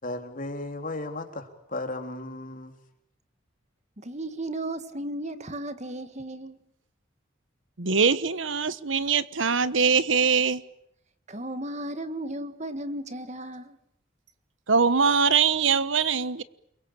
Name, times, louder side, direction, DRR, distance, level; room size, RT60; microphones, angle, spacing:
voice 1, 0.0-2.8, left 2 dB, 45° left, 3.6 m, -35 dB
voice 2, 4.0-6.6 11.3-13.8, right 1 dB, 35° right, 1.8 m, -35 dB
voice 3, 7.8-10.6 14.7-16.4, right 5 dB, 75° right, 1.2 m, -22 dB
29.5 x 23.0 x 8.9 m
head